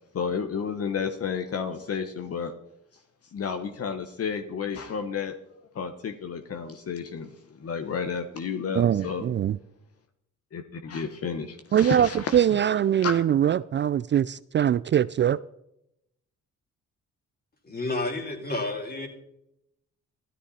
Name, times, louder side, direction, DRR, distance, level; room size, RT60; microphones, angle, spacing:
voice 1, 0.1-2.5 3.3-5.3 5.7-9.2 10.5-12.4 13.0-13.1, left 6 dB, 50° left, 7 dB, 1.3 m, -31 dB
voice 2, 8.8-9.6 11.7-15.4, right 10 dB, 40° right, 16 dB, 0.4 m, -22 dB
voice 3, 17.6-19.1, left 2 dB, 30° left, 3 dB, 3.8 m, -30 dB
13.0 x 13.0 x 4.3 m, 0.80 s
cardioid pair, 90°, 30 cm